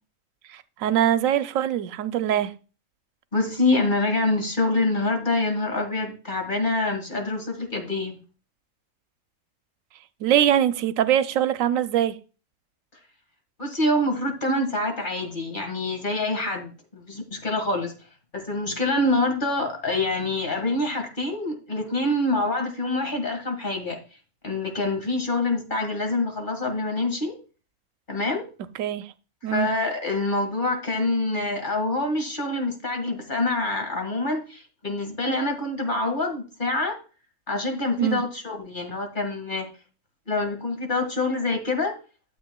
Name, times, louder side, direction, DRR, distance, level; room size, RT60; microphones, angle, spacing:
voice 1, 0.5-2.5 10.2-12.1 28.8-29.1 29.4-29.7 38.0-38.2, right 11 dB, 90° right, 1.0 m, -22 dB
voice 2, 3.3-8.2 13.6-17.9 18.3-24.0 24.4-27.3 28.1-28.4 29.4-37.0 37.5-39.7 40.3-42.0, left 2 dB, 40° left, 1.8 m, -26 dB
12.5 x 7.4 x 2.2 m
omnidirectional pair, 1.3 m